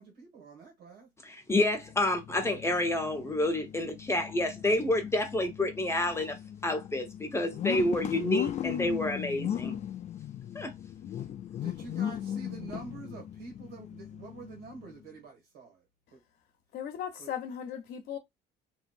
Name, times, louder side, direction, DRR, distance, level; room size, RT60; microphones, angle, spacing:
voice 1, 0.0-1.1 2.3-2.4 11.6-15.8 16.1-16.2 17.2-17.3, right 4 dB, 85° right, 1.7 m, -47 dB
voice 2, 1.2-6.4 6.6-9.8 10.5-10.7, left 1 dB, 15° left, 0.8 m, -29 dB
sound 1, 1.7-15.0, left 10 dB, 45° left, 0.4 m, -38 dB
voice 3, 16.7-18.2, left 9 dB, 70° left, 0.8 m, -37 dB
3.0 x 2.6 x 2.4 m
cardioid pair, 110°, 17 cm